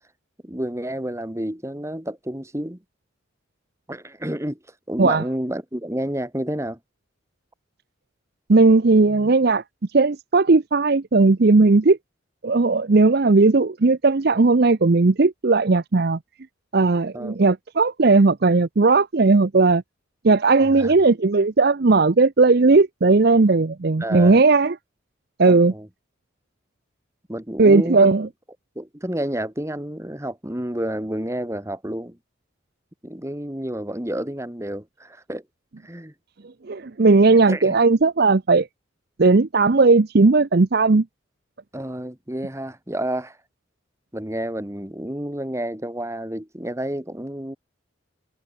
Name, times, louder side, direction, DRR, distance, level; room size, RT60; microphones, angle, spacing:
voice 1, 0.4-2.8 3.9-4.6 4.9-6.8 17.1-17.4 20.6-20.9 24.0-24.4 25.5-25.9 27.3-28.1 28.7-32.2 33.0-35.4 35.8-36.1 37.5-37.8 41.7-43.4 44.1-47.6, right 1 dB, 15° right, 1.6 m, -30 dB
voice 2, 8.5-9.6 9.9-12.0 12.4-16.2 16.7-19.8 20.2-24.7 25.4-25.7 27.6-28.3 36.7-38.7 39.2-41.0, right 3 dB, 50° right, 0.6 m, -17 dB
head